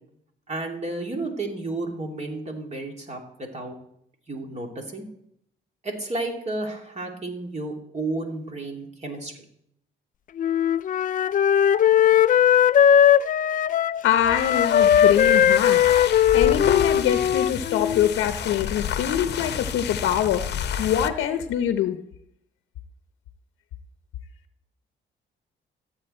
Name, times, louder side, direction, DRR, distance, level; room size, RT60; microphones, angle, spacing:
voice 1, 0.5-3.8 4.3-5.1 5.8-9.4, right 2 dB, 35° right, 2 dB, 2.7 m, -32 dB
Wind instrument woodwind instrument, 10.4-18.1, left 9 dB, 40° left, 0.4 m, -19 dB
voice 2, 14.0-20.4 20.8-22.0, left 10 dB, 85° left, 8 dB, 0.8 m, -24 dB
sound 1, 14.2-21.2, left 8 dB, 60° left, 0.8 m, -31 dB
14.0 x 8.4 x 4.3 m, 0.73 s
cardioid pair, 90°, 20 cm